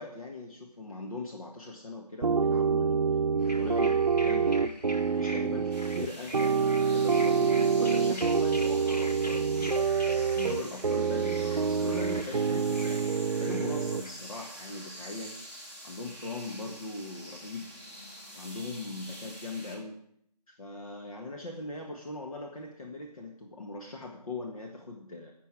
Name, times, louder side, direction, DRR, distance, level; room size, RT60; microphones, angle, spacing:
voice 1, 0.0-3.0 3.3-4.7 5.1-9.9 10.3-13.1 13.4-15.4 15.8-17.7 18.3-20.0 20.5-25.3, left 2 dB, 60° left, 1 dB, 1.7 m, -40 dB
sound 1, 2.2-14.0, right 5 dB, 65° right, 0.6 m, -27 dB
sound 2, 3.4-14.5, left 1 dB, 80° left, 1.9 m, -45 dB
sound 3, 5.7-19.8, equal, 20° left, 2.0 m, -46 dB
18.0 x 7.0 x 4.9 m, 0.71 s
figure-of-eight pair, 160°, 21 cm